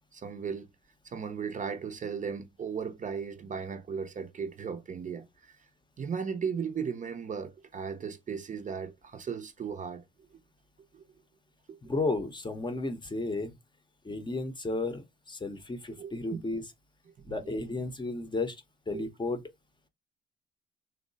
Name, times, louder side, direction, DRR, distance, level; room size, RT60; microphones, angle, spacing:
voice 1, 0.1-0.7 1.0-5.6 6.0-10.0 10.9-11.0 11.7-11.8 16.0-16.4 17.4-17.5 18.9-19.1, right 6 dB, 40° right, 0.6 m, -36 dB
voice 2, 11.8-13.5 14.0-16.6 17.2-19.4, left 2 dB, 20° left, 0.7 m, -33 dB
3.0 x 2.0 x 3.8 m
cardioid pair, 75°, 21 cm